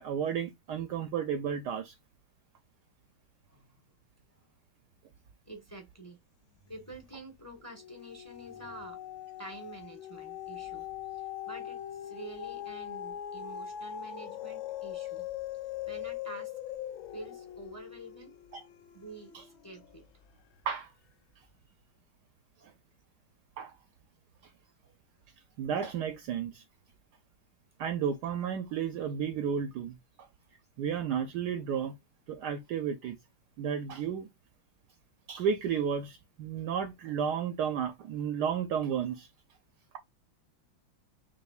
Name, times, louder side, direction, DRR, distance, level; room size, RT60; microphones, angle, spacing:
voice 1, 0.0-1.9 18.5-18.6 19.3-19.4 20.7-20.9 23.6-23.7 25.6-26.6 27.8-30.3 30.8-32.0 32.3-33.2 33.6-34.3 35.3-39.3, right 7 dB, 70° right, 1.0 m, -32 dB
voice 2, 3.5-3.8 4.3-4.5 5.4-6.2 6.7-9.0 9.4-10.9 11.1-15.3 15.9-16.5 17.1-18.3 18.9-20.0 21.7-21.8, right 2 dB, 10° left, 1.0 m, -48 dB
sound 1, 6.7-7.2 7.6-20.1 20.6-20.7, left 11 dB, 85° left, 1.5 m, -41 dB
6.2 x 2.7 x 2.4 m
omnidirectional pair, 2.1 m